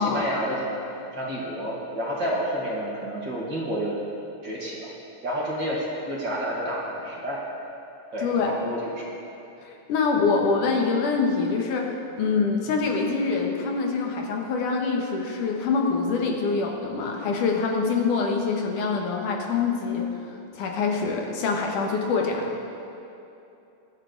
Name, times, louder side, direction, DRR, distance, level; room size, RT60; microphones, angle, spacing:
voice 1, 0.0-4.0 4.4-4.9 5.2-7.4 8.1-9.1, equal, 40° right, -4 dB, 2.3 m, -30 dB
voice 2, 8.2-8.6 9.6-20.1 20.5-22.5, left 4 dB, 80° left, 1 dB, 2.9 m, -25 dB
22.0 x 10.0 x 4.0 m, 2.8 s
omnidirectional pair, 3.5 m